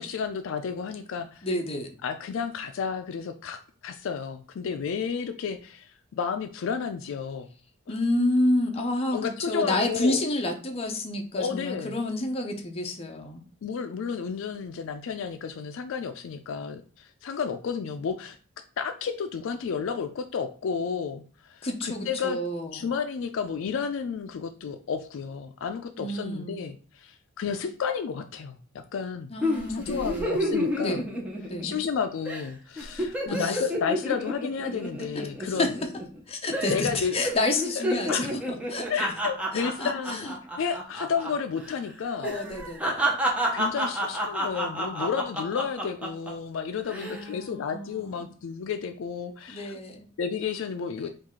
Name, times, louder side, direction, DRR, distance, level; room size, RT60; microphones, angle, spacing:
voice 1, 0.0-1.5 2.0-3.6 3.8-7.5 7.9-8.0 9.1-10.2 11.3-12.0 13.6-18.4 18.8-22.4 22.7-29.3 29.7-31.0 31.6-35.7 36.7-37.1 37.8-38.3 38.9-40.3 40.6-42.3 43.5-49.8 50.2-51.1, left 6 dB, 65° left, 7 dB, 0.3 m, -32 dB
voice 2, 1.4-1.9 7.9-9.2 9.5-13.5 21.6-22.9 26.0-26.6 29.3-30.5 30.8-31.0 31.5-31.7 33.3-33.6 35.5-35.7 36.3-38.9 39.5-40.3 42.2-43.2 47.0-48.3 49.5-50.1 51.0-51.1, left 1 dB, 30° left, 3 dB, 0.7 m, -29 dB
sound 1, 29.4-31.9 32.3-32.5 32.8-36.2 36.5-36.9 37.2-41.3 41.6-41.8 42.2-46.3 46.8-47.2, equal, 5° right, 0.7 m, -30 dB
4.6 x 2.4 x 3.6 m, 0.38 s
head